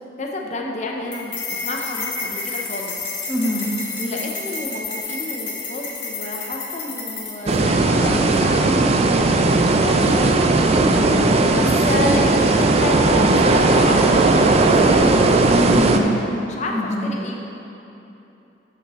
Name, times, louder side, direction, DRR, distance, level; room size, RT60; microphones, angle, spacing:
voice 1, 0.0-3.1 4.0-9.0 9.5-10.3 11.5-15.0 16.4-17.4, left 2 dB, 40° left, -1 dB, 0.7 m, -29 dB
sound 1, 1.1-7.6, left 4 dB, 70° left, 1.7 m, -30 dB
voice 2, 3.3-3.7 10.9-11.2 15.5-16.1 16.7-17.1, equal, 5° right, -7 dB, 0.9 m, -23 dB
sound 2, 7.5-16.0, right 2 dB, 35° right, 0.4 m, -16 dB
13.0 x 5.8 x 3.1 m, 3.0 s
head